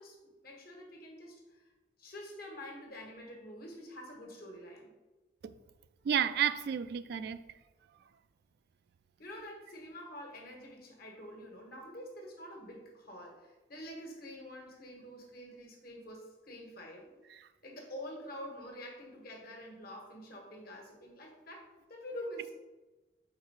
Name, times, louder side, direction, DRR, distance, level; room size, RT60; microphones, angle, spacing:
voice 1, 0.0-1.6 2.0-4.9 9.2-17.1 17.6-22.5, equal, 60° left, 1.5 m, -47 dB
voice 2, 6.0-7.4 17.3-17.4, right 8 dB, 65° right, 0.3 m, -31 dB
4.7 x 4.4 x 4.8 m
head